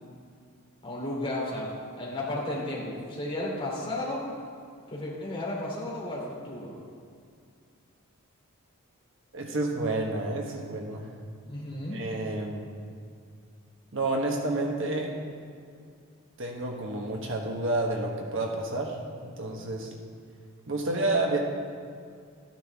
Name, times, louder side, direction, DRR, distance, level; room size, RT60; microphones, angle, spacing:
voice 1, 0.8-1.7 2.0-4.2 4.9-6.7 11.5-12.0, left 1 dB, 25° left, -5 dB, 2.8 m, -33 dB
voice 2, 9.3-11.1 11.9-12.7 13.9-15.1 16.4-19.0 19.2-19.9 20.7-21.4, right 2 dB, 60° right, 1 dB, 1.2 m, -29 dB
13.5 x 10.5 x 3.5 m, 2.2 s
head